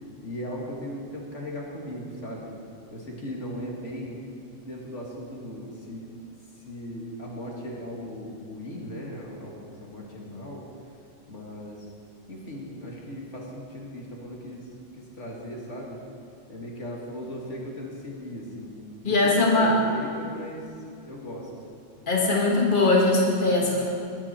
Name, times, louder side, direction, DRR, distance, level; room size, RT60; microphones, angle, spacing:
voice 1, 0.0-2.5 2.9-6.1 6.6-10.6 11.3-11.9 12.3-16.0 16.5-18.8 19.0-20.6 21.1-21.5, equal, 75° left, -2 dB, 2.3 m, -38 dB
voice 2, 19.0-19.7 22.1-23.9, left 2 dB, 40° left, -3 dB, 2.0 m, -21 dB
21.0 x 8.9 x 4.4 m, 2.5 s
omnidirectional pair, 1.3 m